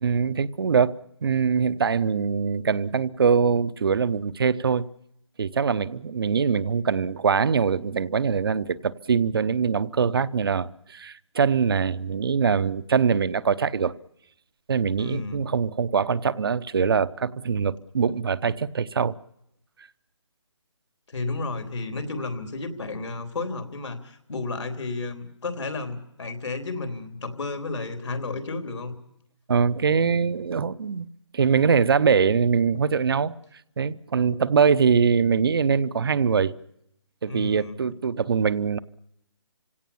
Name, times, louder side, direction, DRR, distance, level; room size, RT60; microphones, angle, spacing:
voice 1, 0.0-1.0 1.2-4.8 5.4-13.9 14.7-19.2 29.5-31.1 31.3-33.3 33.8-36.5 37.2-38.8, right 6 dB, 55° right, 0.8 m, -23 dB
voice 2, 15.0-15.4 21.1-28.9 37.3-37.8, left 3 dB, 70° left, 3.7 m, -32 dB
29.0 x 17.0 x 7.0 m
hypercardioid pair, 170°, 15 cm